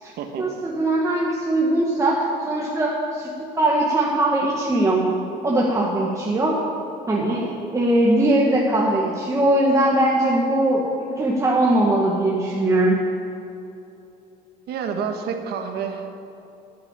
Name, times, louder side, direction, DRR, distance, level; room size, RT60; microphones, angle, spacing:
voice 1, 0.4-5.1 5.4-6.6 7.1-10.8 11.2-13.0, right 1 dB, 20° right, -4 dB, 1.8 m, -20 dB
voice 2, 14.7-16.1, right 6 dB, 75° right, 5 dB, 1.5 m, -28 dB
10.5 x 9.7 x 8.4 m, 2.8 s
cardioid pair, 110°, 17 cm